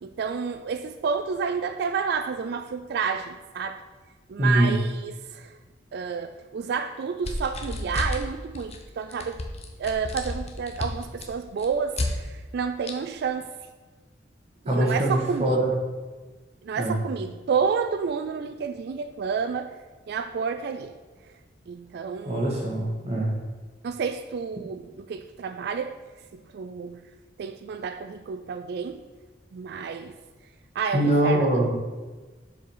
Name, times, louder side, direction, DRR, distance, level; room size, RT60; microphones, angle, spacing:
voice 1, 0.0-3.8 4.3-5.6 5.9-9.4 9.8-13.5 14.6-15.6 16.6-19.8 20.1-21.4 21.7-22.6 23.8-25.9 26.3-27.0 27.4-29.1 29.5-30.2 30.7-31.5, right 6 dB, 60° right, 0.3 m, -30 dB
voice 2, 4.4-4.7 14.7-15.7 16.8-17.0 22.2-23.4 30.9-31.7, right 1 dB, 35° right, 1.4 m, -23 dB
sound 1, 7.2-8.3 8.5-8.8 9.1-12.1 12.9-13.0, left 2 dB, 35° left, 0.8 m, -31 dB
6.9 x 4.8 x 4.7 m
head